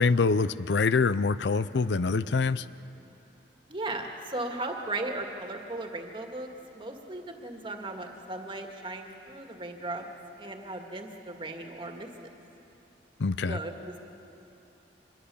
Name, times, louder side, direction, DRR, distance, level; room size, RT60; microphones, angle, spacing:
voice 1, 0.0-2.6 13.2-13.6, left 4 dB, 80° left, 15 dB, 0.6 m, -25 dB
voice 2, 3.7-10.1 10.4-12.1 13.4-14.0, right 2 dB, 30° right, 3 dB, 2.0 m, -37 dB
26.0 x 21.5 x 7.0 m, 2.9 s
head